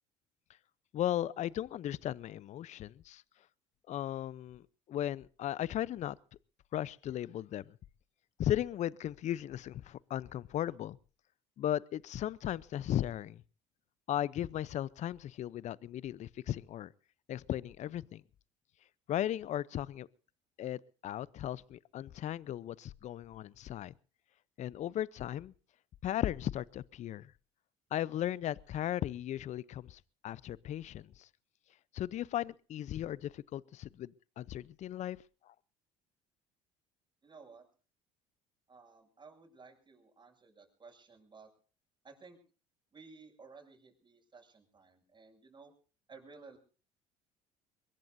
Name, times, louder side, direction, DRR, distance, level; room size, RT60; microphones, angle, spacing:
voice 1, 0.9-3.2 3.9-4.6 4.9-6.2 6.7-7.7 8.4-11.0 11.6-13.4 14.1-16.9 17.3-18.2 19.1-20.1 20.6-23.9 24.6-25.5 26.0-27.3 27.9-31.3 31.9-35.2 35.5-35.6, left 12 dB, 50° left, 0.7 m, -36 dB
voice 2, 37.2-37.7 38.7-41.5 42.0-42.4 42.9-45.7 46.1-46.6, right 4 dB, 30° right, 7.3 m, -56 dB
23.0 x 21.0 x 2.7 m
supercardioid pair, 75°, 15 cm